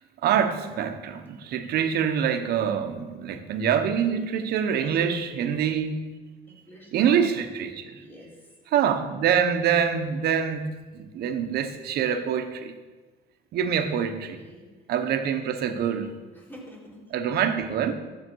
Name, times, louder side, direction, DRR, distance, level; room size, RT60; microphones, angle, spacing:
voice 1, 0.2-6.0 6.9-7.9 8.7-10.7 10.9-12.7 13.5-14.4 14.9-16.1 17.1-17.9, right 8 dB, 70° right, 1.1 m, -25 dB
voice 2, 4.6-5.4 6.7-6.9 7.9-8.4 14.3-14.7 16.3-17.0, left 1 dB, 10° left, 3.9 m, -47 dB
13.0 x 7.3 x 4.7 m
cardioid pair, 110°, 17 cm